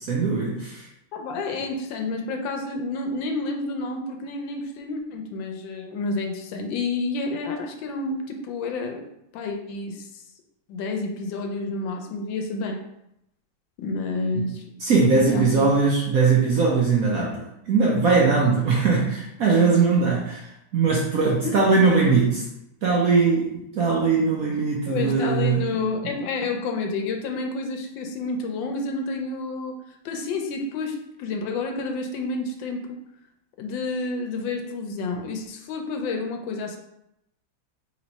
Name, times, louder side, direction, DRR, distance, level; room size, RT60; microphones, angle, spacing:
voice 1, 0.1-0.9 14.3-14.4 14.8-22.4 22.8-25.6, right 4 dB, 65° right, -3 dB, 0.9 m, -20 dB
voice 2, 1.1-9.0 9.3-10.1 10.7-12.8 13.8-15.7 21.4-21.5 24.9-29.7 30.0-32.9 33.6-36.8, left 3 dB, 75° left, 4 dB, 1.3 m, -29 dB
3.3 x 3.1 x 4.0 m, 0.82 s
omnidirectional pair, 2.1 m